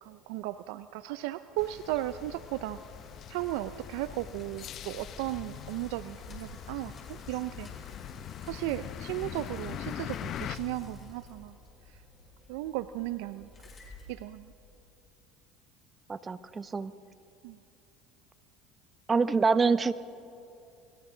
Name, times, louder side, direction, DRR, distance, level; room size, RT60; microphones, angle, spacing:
voice 1, 0.0-2.8 3.3-7.7 8.4-11.6 12.5-13.5 14.1-14.5 17.4-17.6, right 15 dB, 75° right, 13 dB, 0.5 m, -35 dB
sound 1, 1.6-10.6, left 11 dB, 50° left, 0.7 m, -42 dB
Bicycle, 1.9-14.9, left 2 dB, 25° left, 5.1 m, -52 dB
sound 2, 5.2-11.0, left 9 dB, 75° left, 3.1 m, -52 dB
voice 2, 16.1-16.9 19.1-19.9, right 4 dB, 25° right, 14 dB, 0.8 m, -26 dB
29.0 x 23.5 x 3.9 m, 2.8 s
supercardioid pair, 95°, 0 cm